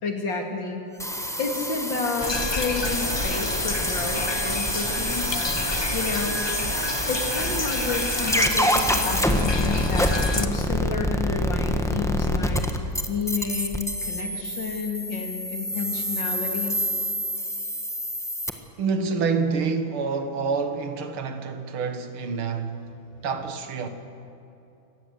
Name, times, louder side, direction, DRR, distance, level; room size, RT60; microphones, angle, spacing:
voice 1, 0.0-0.8 1.4-5.5 5.9-6.5 7.1-12.7 13.1-16.8, left 4 dB, 60° left, 3.3 m, -30 dB
sound 1, 1.0-18.5, equal, ahead, 0.9 m, -27 dB
sound 2, 2.2-10.5, left 2 dB, 25° left, 0.5 m, -29 dB
voice 2, 5.4-5.8 18.8-22.9 23.2-23.9, right 5 dB, 85° right, 2.3 m, -27 dB
24.0 x 19.0 x 8.1 m
omnidirectional pair, 2.3 m